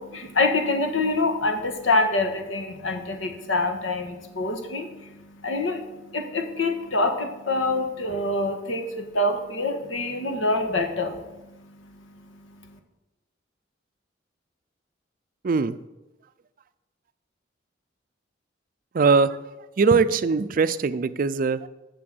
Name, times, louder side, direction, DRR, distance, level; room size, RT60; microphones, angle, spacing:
voice 1, 0.0-12.8, left 2 dB, 90° left, 5 dB, 1.5 m, -26 dB
voice 2, 15.4-15.8 18.9-19.4 19.8-21.7, right 4 dB, 45° right, 14 dB, 0.4 m, -21 dB
7.7 x 6.9 x 7.7 m, 1.0 s
head